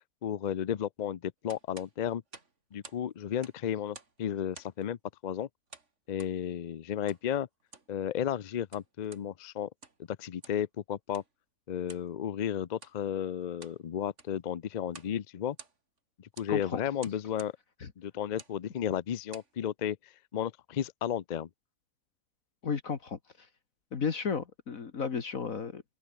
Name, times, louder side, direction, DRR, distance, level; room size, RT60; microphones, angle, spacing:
voice 1, 0.2-2.2 2.7-5.0 5.2-5.5 6.1-7.5 7.9-9.7 10.1-11.2 11.7-15.6 16.2-17.5 18.0-21.5, left 9 dB, 85° left, 0.3 m, -33 dB
sound 1, 1.5-3.1 3.3-4.2 4.5-4.9 5.7-6.4 7.1-7.3 7.6-7.9 8.5-9.3 9.7-10.1 10.4-10.7 11.1-11.3 11.9-12.1 12.7-13.0 13.4-13.8 14.1-14.4 14.9-15.2 15.4-16.0 16.4-16.5 17.0-17.6 18.3-18.6 19.1-19.5, right 4 dB, 50° right, 3.0 m, -51 dB
voice 2, 16.5-16.8 17.8-17.9 22.6-23.5 23.9-25.8, left 5 dB, 60° left, 2.0 m, -34 dB
omnidirectional pair, 1.6 m